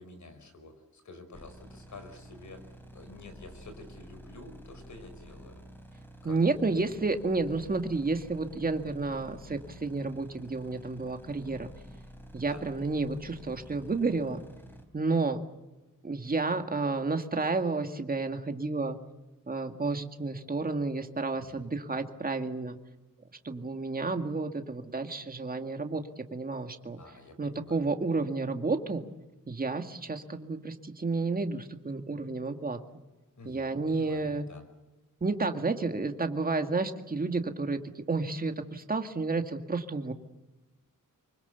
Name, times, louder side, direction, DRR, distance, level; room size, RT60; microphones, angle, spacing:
voice 1, 0.0-5.6 6.2-6.6 12.4-12.7 21.4-21.7 27.0-27.8 33.4-34.6, left 2 dB, 60° left, 8 dB, 5.4 m, -49 dB
sound 1, 1.3-14.8, equal, 5° left, 3.8 m, -50 dB
voice 2, 6.2-11.7 12.3-14.4 14.9-15.4 16.0-19.0 19.5-22.8 23.4-27.0 27.4-29.0 29.5-32.8 33.5-34.5 35.2-40.1, right 3 dB, 25° right, 6 dB, 1.9 m, -31 dB
25.5 x 24.0 x 7.0 m, 1.1 s
wide cardioid pair, 135°, 33 cm